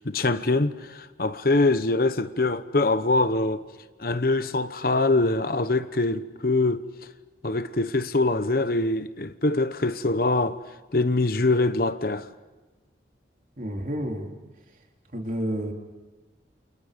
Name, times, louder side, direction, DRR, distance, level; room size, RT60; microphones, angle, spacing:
voice 1, 0.0-3.6 4.0-6.9 7.4-10.6 10.9-12.3, left 2 dB, 50° left, 1.0 m, -24 dB
voice 2, 13.6-14.3 15.1-15.7, equal, 45° right, 3.5 m, -30 dB
29.5 x 28.5 x 5.3 m
head